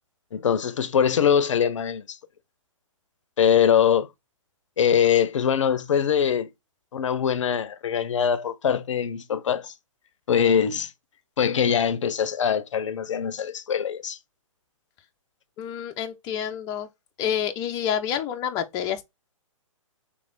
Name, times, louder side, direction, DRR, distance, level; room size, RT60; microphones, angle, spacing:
voice 1, 0.3-2.2 3.4-4.1 4.8-6.5 6.9-9.7 10.3-10.9 11.4-14.2, left 8 dB, 65° left, 0.6 m, -22 dB
voice 2, 15.6-16.9 17.2-19.0, left 9 dB, 20° left, 0.5 m, -28 dB
3.4 x 3.2 x 3.8 m
hypercardioid pair, 130°, 17 cm